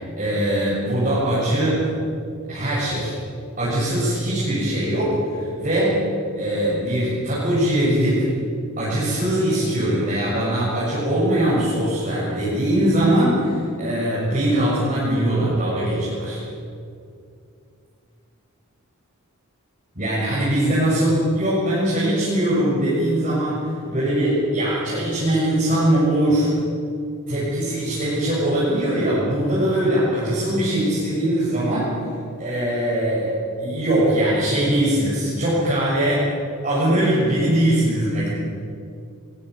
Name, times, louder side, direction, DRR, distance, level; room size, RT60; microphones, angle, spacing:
voice 1, 0.2-1.8 2.5-3.1 3.6-6.0 6.4-8.3 8.8-16.4 20.0-26.5 27.3-31.9 32.4-36.3 36.6-38.3, right 1 dB, 35° right, -9 dB, 7.2 m, -21 dB
23.0 x 20.0 x 8.0 m, 2.4 s
head